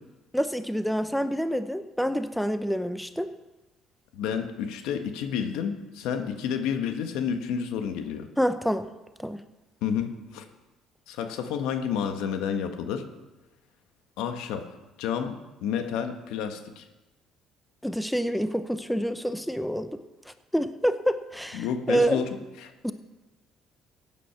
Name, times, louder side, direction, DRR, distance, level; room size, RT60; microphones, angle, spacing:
voice 1, 0.3-3.3 8.4-8.9 9.2-9.4 17.8-19.9 20.3-22.2 22.8-22.9, equal, ahead, 10 dB, 0.7 m, -27 dB
voice 2, 4.1-8.3 9.8-10.4 11.1-13.0 14.2-14.7 15.0-16.9 21.5-22.7, left 7 dB, 85° left, 7 dB, 1.4 m, -30 dB
16.0 x 9.0 x 5.8 m, 1.1 s
cardioid pair, 105°, 0 cm